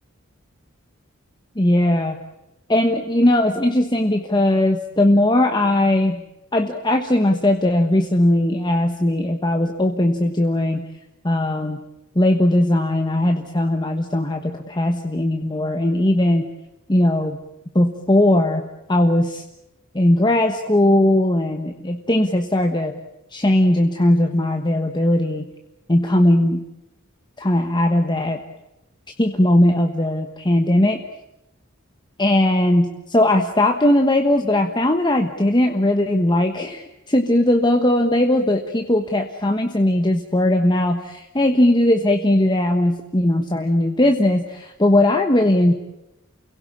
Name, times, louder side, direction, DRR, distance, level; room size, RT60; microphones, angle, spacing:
voice 1, 1.6-2.2 2.7-6.2 6.5-10.9 11.2-11.8 12.1-16.5 16.9-17.4 17.7-18.6 18.9-19.4 19.9-22.9 23.3-25.5 25.9-26.6 27.4-28.4 29.2-31.0 32.2-45.7, left 1 dB, 20° left, 4 dB, 1.2 m, -18 dB
29.0 x 17.0 x 8.7 m, 0.92 s
head